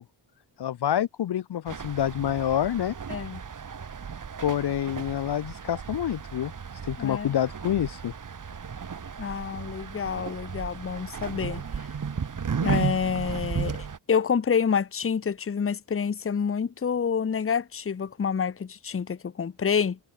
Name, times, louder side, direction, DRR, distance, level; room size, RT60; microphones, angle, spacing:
voice 1, 0.6-2.9 4.4-6.5 6.8-8.1, left 10 dB, 60° left, 1.0 m, -27 dB
sound 1, 1.7-14.0, right 6 dB, 45° right, 2.5 m, -34 dB
voice 2, 3.1-3.4 7.0-7.3 9.2-11.6 12.6-20.0, left 6 dB, 30° left, 1.0 m, -28 dB
cardioid pair, 100°, 45 cm